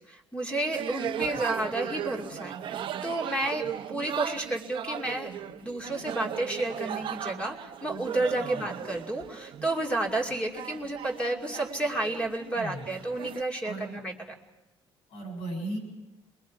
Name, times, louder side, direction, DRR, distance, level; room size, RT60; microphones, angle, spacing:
voice 1, 0.1-14.1, right 2 dB, 10° left, 0 dB, 2.5 m, -31 dB
sound 1, 0.7-13.4, right 10 dB, 50° right, 0.7 m, -37 dB
voice 2, 8.4-8.7 11.2-11.4 12.5-12.9 13.6-14.1 15.1-15.8, right 1 dB, 75° left, 1 dB, 6.9 m, -37 dB
27.5 x 21.5 x 4.7 m, 1.1 s
cardioid pair, 135°, 11 cm